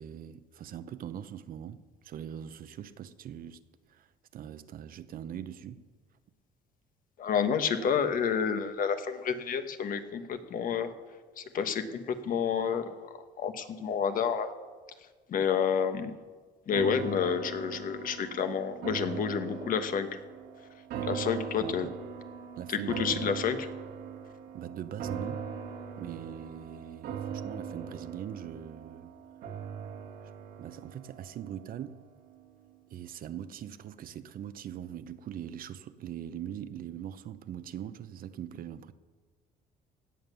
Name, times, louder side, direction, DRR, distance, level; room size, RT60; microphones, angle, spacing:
voice 1, 0.0-3.6 3.9-4.1 4.3-5.8 20.9-21.3 21.6-22.0 22.6-23.4 24.5-25.5 25.9-29.1 30.6-32.1 32.9-38.9, right 10 dB, 60° right, 0.9 m, -41 dB
voice 2, 7.2-10.9 11.4-13.1 13.4-14.5 15.3-16.2 16.7-20.2 21.1-21.9 22.7-23.7, left 7 dB, 55° left, 1.3 m, -29 dB
sound 1, 16.7-32.0 32.4-32.5, right 7 dB, 80° right, 2.1 m, -40 dB
17.0 x 9.1 x 6.9 m
cardioid pair, 110°, 17 cm